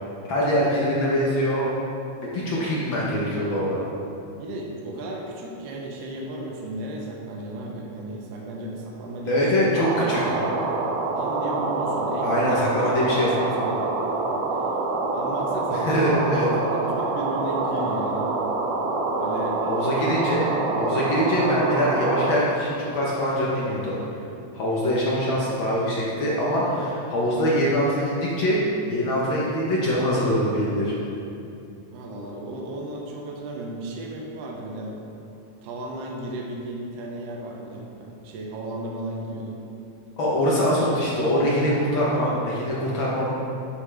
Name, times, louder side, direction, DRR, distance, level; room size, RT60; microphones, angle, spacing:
voice 1, 0.3-1.7 2.2-3.8 9.3-10.4 12.2-13.3 15.7-16.5 19.7-20.5 20.8-24.0 24.5-28.6 28.9-30.9 40.2-43.3, equal, 65° left, -6 dB, 1.2 m, -23 dB
voice 2, 4.4-9.7 11.1-12.7 13.0-13.8 14.5-14.7 15.1-16.0 16.7-18.3 19.2-19.6 31.9-34.9 35.6-39.6 40.5-41.3 42.2-42.4, right 1 dB, 70° right, -1 dB, 1.7 m, -35 dB
sound 1, 9.8-22.4, right 3 dB, 90° right, 2.2 m, -26 dB
9.6 x 5.6 x 3.3 m, 2.7 s
omnidirectional pair, 3.4 m